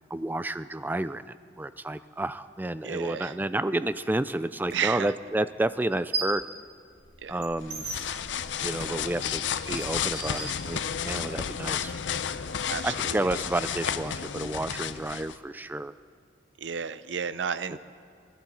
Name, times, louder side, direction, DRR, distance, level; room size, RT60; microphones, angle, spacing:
voice 1, 0.1-6.4 7.3-7.9 8.6-11.9 12.8-15.9 17.7-17.8, right 1 dB, 10° right, 14 dB, 0.3 m, -30 dB
voice 2, 2.8-3.4 4.7-5.1 7.2-7.4 12.7-13.2 16.6-17.8, right 7 dB, 80° right, 13 dB, 0.6 m, -32 dB
sound 1, 4.7-4.8 5.8-6.5 6.8-11.2, right 3 dB, 60° right, 2.3 m, -37 dB
sound 2, 7.6-15.4, left 8 dB, 85° left, 0.6 m, -32 dB
25.0 x 13.0 x 4.2 m, 2.2 s
head